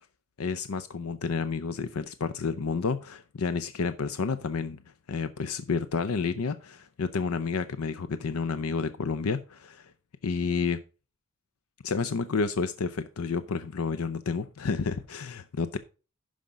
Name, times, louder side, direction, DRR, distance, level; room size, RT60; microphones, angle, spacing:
voice 1, 0.4-4.8 5.1-9.9 10.2-10.8 11.8-15.8, left 5 dB, 85° left, 0.6 m, -30 dB
11.5 x 5.1 x 5.1 m
head